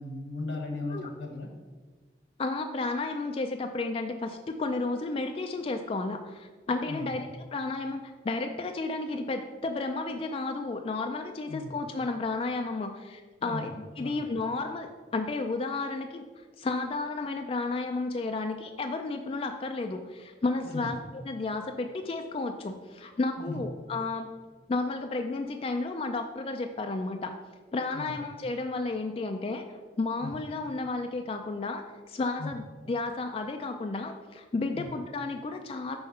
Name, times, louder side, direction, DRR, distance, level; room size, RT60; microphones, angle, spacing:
voice 1, 0.0-1.5 6.9-7.1 11.5-11.7 13.4-13.7 14.0-14.2 20.6-20.9 23.4-23.6 27.9-28.1 30.2-30.3 32.4-32.5 34.7-34.9, left 2 dB, 85° left, 2 dB, 1.4 m, -37 dB
voice 2, 2.4-16.2 16.6-24.3 24.7-27.3 27.7-29.6 30.0-36.0, left 3 dB, 30° left, 5 dB, 0.3 m, -32 dB
5.5 x 4.5 x 5.5 m, 1.4 s
head